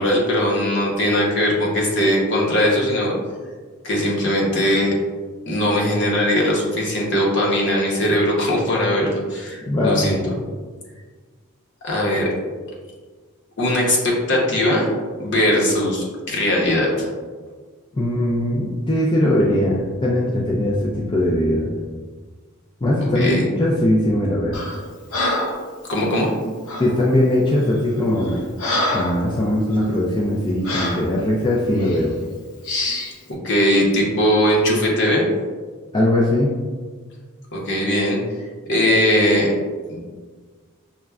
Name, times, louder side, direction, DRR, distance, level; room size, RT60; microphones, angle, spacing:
voice 1, 0.0-3.1 3.8-4.9 5.5-10.2 11.8-12.3 13.6-14.9 15.2-17.1 23.0-23.4 25.9-26.3 33.4-35.3 37.5-38.2 38.7-39.5 39.9-40.0, equal, 55° left, -3 dB, 0.8 m, -20 dB
voice 2, 9.7-10.2 18.0-21.7 22.8-24.6 26.8-28.4 28.9-32.1 35.9-36.6, left 1 dB, 20° left, -4 dB, 0.3 m, -20 dB
Breathing, 24.5-24.8 25.1-25.6 26.7-26.9 27.6-27.8 28.2-29.2 29.7-29.9 30.6-31.1 31.8-32.0 32.6-33.1, left 1 dB, 85° left, 0.7 m, -25 dB
5.7 x 2.1 x 2.3 m, 1.5 s
head